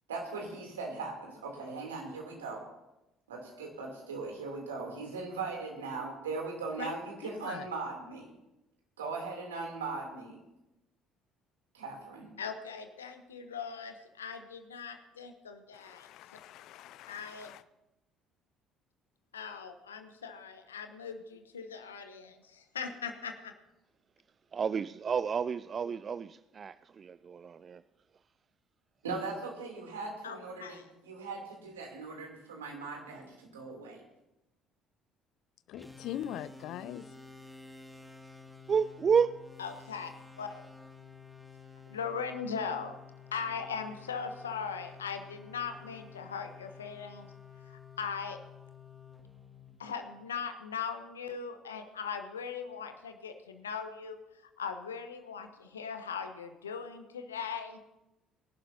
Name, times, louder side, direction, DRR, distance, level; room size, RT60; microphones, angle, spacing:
voice 1, 0.1-2.6 3.3-8.3 9.0-10.4 11.7-12.3 29.0-30.8 31.0-34.0, right 4 dB, 80° right, 3.0 m, -39 dB
voice 2, 7.2-7.7 15.7-17.6 35.7-37.1, left 11 dB, 60° left, 0.6 m, -42 dB
voice 3, 12.4-16.1 17.1-17.5 19.3-23.5 30.2-30.8 39.6-40.1 40.4-40.6 41.9-43.0 43.3-47.3 47.6-48.4 49.8-57.8, left 6 dB, 85° left, 1.1 m, -39 dB
voice 4, 24.5-27.8 38.7-39.5, right 6 dB, 40° right, 0.3 m, -30 dB
sound 1, 35.7-50.3, left 5 dB, ahead, 2.1 m, -52 dB
22.5 x 11.5 x 2.8 m
figure-of-eight pair, 50°, 0 cm